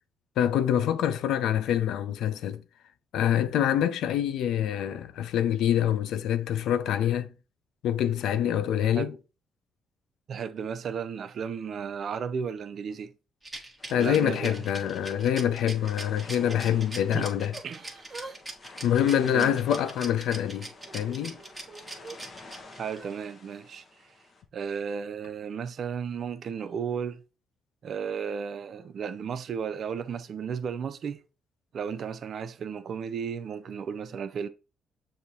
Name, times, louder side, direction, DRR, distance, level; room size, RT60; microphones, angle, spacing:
voice 1, 0.4-2.6 3.1-7.3 7.8-9.2 13.9-17.5 18.8-21.4, left 10 dB, 80° left, 0.4 m, -26 dB
voice 2, 10.3-13.1 14.0-14.6 17.1-17.3 17.6-17.8 19.3-19.6 22.8-23.8 24.5-27.2 27.8-31.2 31.7-34.5, right 7 dB, 60° right, 0.4 m, -34 dB
Rattle, 13.4-23.0, right 2 dB, 10° right, 1.1 m, -41 dB
sound 1, 13.8-24.4, left 3 dB, 45° left, 0.9 m, -50 dB
Yell / Crying sobbing, 15.6-16.9 17.5-18.4 18.7-20.0 20.5-22.2 22.9-23.1, right 3 dB, 35° right, 1.2 m, -47 dB
6.5 x 2.7 x 2.8 m
cardioid pair, 90°, 0 cm